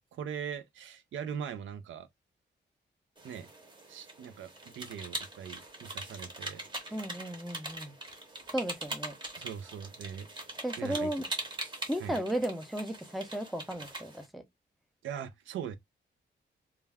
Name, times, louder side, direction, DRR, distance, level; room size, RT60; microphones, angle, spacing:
voice 1, 0.0-2.1 3.2-3.5 3.9-6.9 9.3-10.3 10.8-11.1 12.0-12.2 15.0-15.8, right 8 dB, 90° right, 0.4 m, -41 dB
sound 1, 3.2-14.3, right 2 dB, 25° right, 0.8 m, -42 dB
voice 2, 6.9-7.9 8.5-9.1 10.6-11.3 11.9-14.4, right 1 dB, ahead, 0.4 m, -35 dB
2.3 x 2.2 x 3.3 m
wide cardioid pair, 140°, 20 cm